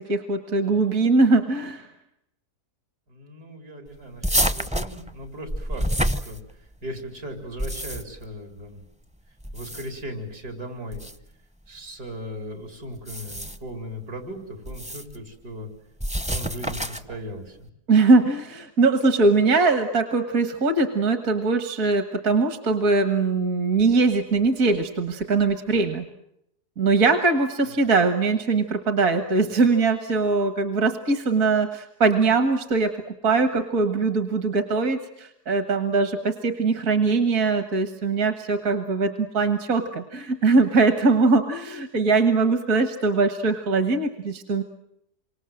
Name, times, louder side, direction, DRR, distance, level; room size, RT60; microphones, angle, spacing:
voice 1, 0.0-1.9 17.9-26.0 26.8-33.0 33.2-44.6, right 3 dB, 60° right, 8 dB, 1.9 m, -21 dB
voice 2, 3.1-8.8 9.5-11.0 11.7-15.7 16.2-17.7, equal, 85° right, 5 dB, 5.3 m, -37 dB
sound 1, 4.2-6.9 7.4-8.3 9.4-10.1 10.9-11.2 12.9-13.7 14.7-15.2 16.0-17.2, equal, 5° right, 0.6 m, -28 dB
28.0 x 25.5 x 7.7 m, 0.79 s
omnidirectional pair, 1.7 m